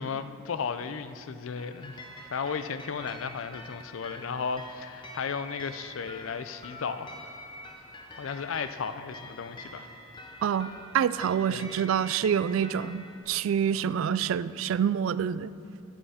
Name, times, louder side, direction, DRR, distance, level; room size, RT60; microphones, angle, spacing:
voice 1, 0.0-2.0 2.3-7.1 8.1-9.9 11.5-11.7, left 6 dB, 85° left, 11 dB, 0.5 m, -34 dB
sound 1, 1.6-13.2, left 1 dB, 25° left, 0.9 m, -46 dB
voice 2, 10.4-15.5, right 8 dB, 80° right, 17 dB, 0.3 m, -27 dB
14.0 x 5.4 x 4.9 m, 2.4 s
head